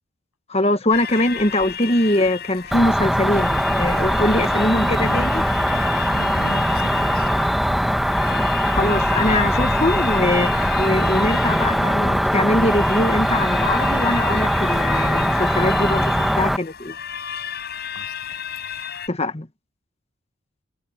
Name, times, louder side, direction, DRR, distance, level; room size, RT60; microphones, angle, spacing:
voice 1, 0.5-5.4 8.3-17.0 19.1-19.5, left 1 dB, 30° left, 1.4 m, -22 dB
sound 1, 0.9-19.1, left 8 dB, 50° left, 5.6 m, -33 dB
Cricket, 2.7-16.6, equal, ahead, 1.0 m, -21 dB
voice 2, 4.5-5.2 5.7-7.3 17.9-18.3, left 1 dB, 90° left, 7.9 m, -38 dB
head